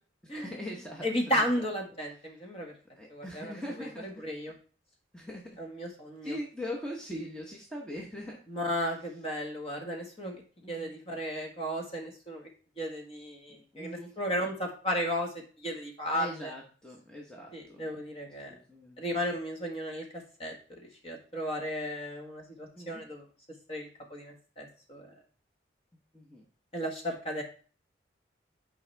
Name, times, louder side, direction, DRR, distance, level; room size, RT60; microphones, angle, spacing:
voice 1, 0.3-1.6 2.3-2.4 3.0-4.2 5.1-5.6 6.2-8.4 10.6-10.9 13.5-14.2 16.1-17.9 18.4-19.0 22.7-23.0 26.1-26.4, equal, 5° left, -2 dB, 1.0 m, -41 dB
voice 2, 1.0-2.7 3.1-3.5 3.8-3.9 4.2-4.5 5.6-6.4 8.5-10.4 10.7-12.5 12.8-16.5 17.5-18.5 19.0-20.1 20.4-23.2 23.7-25.1 26.7-27.4, equal, 30° left, 1 dB, 1.6 m, -34 dB
8.7 x 4.9 x 3.3 m, 0.39 s
head